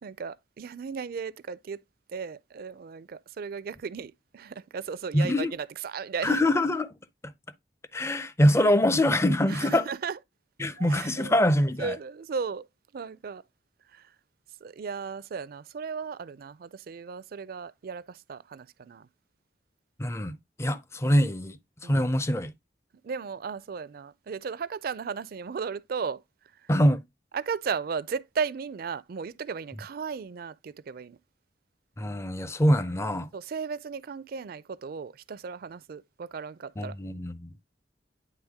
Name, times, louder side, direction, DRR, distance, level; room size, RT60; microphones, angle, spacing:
voice 1, 0.0-1.8 2.1-6.4 9.5-10.2 10.8-11.3 11.8-12.6 12.9-13.4 13.9-14.0 14.6-19.1 21.8-22.0 23.0-26.2 27.3-31.2 33.3-36.9, right 5 dB, 55° right, 0.4 m, -35 dB
voice 2, 5.1-5.5 6.2-6.9 7.2-7.3 7.9-9.8 10.6-12.0 20.0-21.6 21.8-22.5 26.7-27.0 32.0-33.3 36.8-37.5, left 1 dB, 15° left, 0.4 m, -24 dB
9.6 x 3.4 x 3.4 m
head